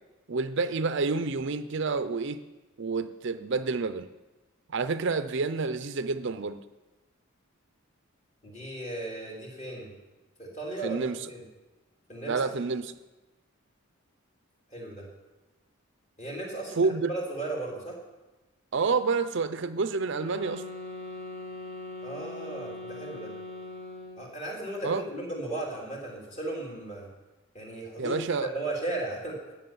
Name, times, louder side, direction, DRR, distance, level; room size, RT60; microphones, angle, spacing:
voice 1, 0.3-2.4 2.8-4.1 4.7-6.6 10.8-11.3 12.3-12.9 16.8-17.1 18.7-20.6 24.8-25.0 28.0-28.5, right 4 dB, 55° right, 12 dB, 0.5 m, -28 dB
voice 2, 8.4-9.9 10.4-11.4 12.1-12.4 14.7-15.1 16.2-16.8 17.1-18.0 22.0-23.3 24.2-27.1 27.5-29.5, right 2 dB, 30° left, -3 dB, 3.4 m, -36 dB
sound 1, 20.1-24.3, left 2 dB, 50° left, 2.5 m, -41 dB
15.0 x 6.0 x 9.2 m, 1.1 s
head